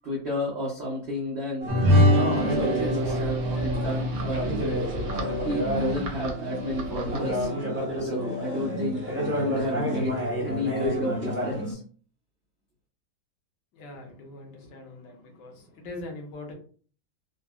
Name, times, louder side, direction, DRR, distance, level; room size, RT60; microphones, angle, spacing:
voice 1, 0.0-1.7 2.5-5.1 5.4-7.5 8.0-11.8, left 1 dB, 85° right, -4 dB, 0.5 m, -31 dB
sound 1, 1.6-11.7, equal, 15° right, 0.4 m, -30 dB
sound 2, 1.7-6.4, equal, 50° right, 0.7 m, -25 dB
sound 3, 2.3-7.5, right 2 dB, 70° right, 1.2 m, -37 dB
voice 2, 13.7-16.5, left 2 dB, 70° left, 2 dB, 1.2 m, -42 dB
3.6 x 2.0 x 2.3 m, 0.43 s
omnidirectional pair, 2.1 m